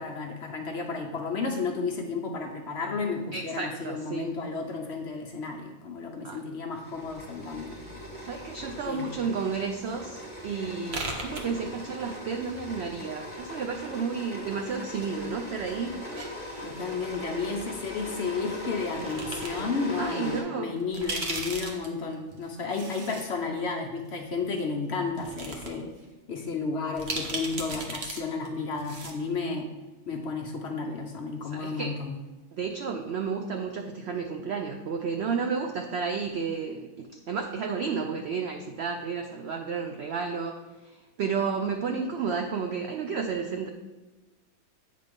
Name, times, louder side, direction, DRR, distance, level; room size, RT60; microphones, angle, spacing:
voice 1, 0.0-7.8 8.8-9.1 16.6-25.9 26.3-29.7 30.1-32.1, left 4 dB, 55° left, 1 dB, 0.8 m, -32 dB
voice 2, 3.3-4.4 6.2-6.4 8.2-16.0 20.0-20.8 31.5-32.0 32.5-43.7, right 5 dB, 75° right, 5 dB, 0.6 m, -32 dB
sound 1, 6.8-20.4, left 1 dB, 20° right, 1.9 m, -40 dB
sound 2, 10.9-12.1 12.4-13.3 14.1-15.1 15.4-16.9 18.2-18.3 18.9-19.6 20.1-20.2 20.8-23.2 23.6-23.7 24.6-24.7 25.1-25.7 26.0-26.1 27.0-28.2 28.4-28.5 28.8-29.2, right 2 dB, 50° right, 1.1 m, -37 dB
8.4 x 3.3 x 5.2 m, 1.2 s
omnidirectional pair, 1.6 m